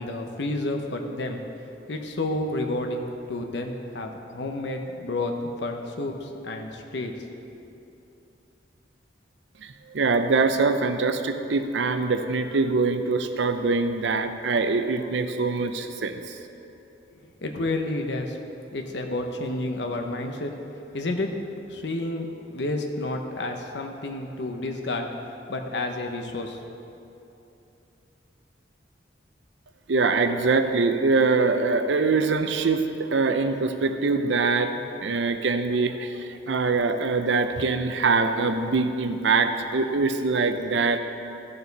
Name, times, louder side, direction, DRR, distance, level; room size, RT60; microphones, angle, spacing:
voice 1, 0.0-1.4 1.9-5.3 5.6-7.1 17.1-18.4 18.7-20.5 20.9-21.3 21.7-25.1 25.5-26.8, left 2 dB, 70° left, 3 dB, 0.9 m, -30 dB
voice 2, 9.6-16.4 29.9-41.0, right 4 dB, 75° right, 8 dB, 0.6 m, -23 dB
13.5 x 6.8 x 4.0 m, 2.8 s
head